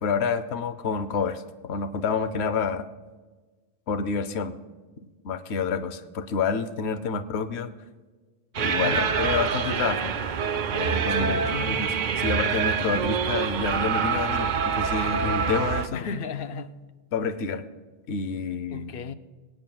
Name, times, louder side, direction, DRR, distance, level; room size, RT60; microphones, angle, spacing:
voice 1, 0.0-2.8 3.9-4.6 5.2-7.7 8.6-10.1 10.7-16.1 17.1-17.6 18.1-18.9, left 5 dB, 90° left, 1.0 m, -28 dB
sound 1, 8.5-15.9, right 6 dB, 55° right, 0.7 m, -26 dB
voice 2, 11.1-11.9 15.9-16.9 18.7-19.1, left 5 dB, 65° left, 0.8 m, -35 dB
24.0 x 9.2 x 2.3 m
omnidirectional pair, 1.1 m